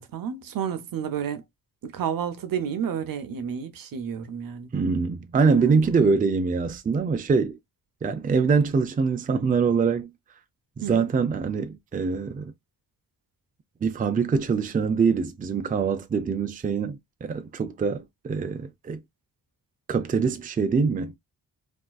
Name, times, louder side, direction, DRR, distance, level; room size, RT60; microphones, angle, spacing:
voice 1, 0.0-1.4 1.8-4.7 5.5-5.8 10.8-11.1, right 8 dB, 75° right, 0.8 m, -31 dB
voice 2, 4.7-7.6 8.0-10.1 10.8-12.5 13.8-19.0 19.9-21.1, right 5 dB, 25° right, 0.4 m, -24 dB
3.6 x 2.5 x 2.2 m
wide cardioid pair, 115°, 34 cm